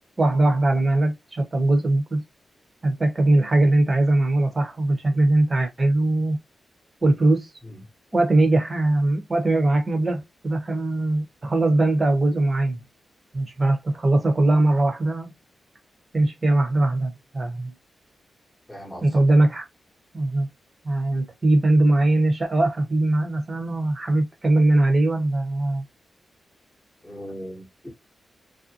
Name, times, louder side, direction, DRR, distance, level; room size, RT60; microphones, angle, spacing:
voice 1, 0.2-2.2 2.8-6.4 7.0-7.5 8.1-12.8 13.3-15.3 16.1-17.7 19.0-19.6 20.1-20.5 20.8-25.8, right 2 dB, 30° right, 0.9 m, -21 dB
voice 2, 18.7-19.2 27.0-27.9, equal, 5° left, 0.9 m, -38 dB
2.5 x 2.1 x 2.6 m
cardioid pair, 90°, 0 cm